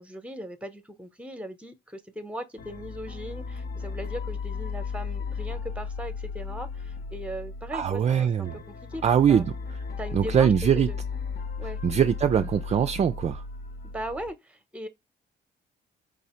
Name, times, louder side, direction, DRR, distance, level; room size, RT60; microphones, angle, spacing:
voice 1, 0.0-8.5 8.9-9.0 9.3-9.4 10.0-10.5 10.8-11.0 11.6-11.8 13.8-14.9, equal, 5° right, 0.9 m, -38 dB
sound 1, 2.6-14.3, left 5 dB, 50° left, 1.0 m, -35 dB
voice 2, 7.7-8.6 9.0-9.5 10.1-10.9 11.8-13.4, right 8 dB, 35° right, 0.4 m, -22 dB
4.9 x 2.7 x 3.1 m
cardioid pair, 90°, 20 cm